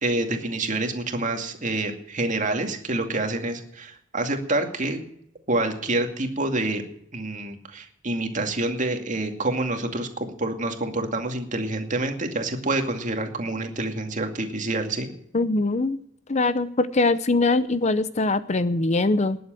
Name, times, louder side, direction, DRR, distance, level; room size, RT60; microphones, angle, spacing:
voice 1, 0.0-5.0 5.5-6.8 7.1-15.1, right 2 dB, 40° right, 5 dB, 2.3 m, -27 dB
voice 2, 15.3-16.0 16.3-19.4, left 3 dB, 35° left, 14 dB, 0.7 m, -22 dB
20.0 x 8.0 x 7.7 m, 0.74 s
head